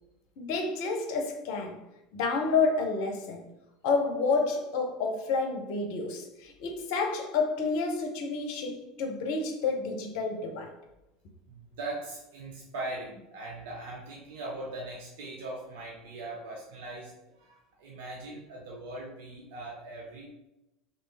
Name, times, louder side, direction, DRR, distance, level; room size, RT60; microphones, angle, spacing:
voice 1, 0.4-1.8 2.1-3.5 3.8-10.7, left 4 dB, 60° left, 0.5 m, -29 dB
voice 2, 11.5-20.3, right 2 dB, 65° right, 0.5 m, -40 dB
3.1 x 2.3 x 3.2 m
figure-of-eight pair, 70°, 0 cm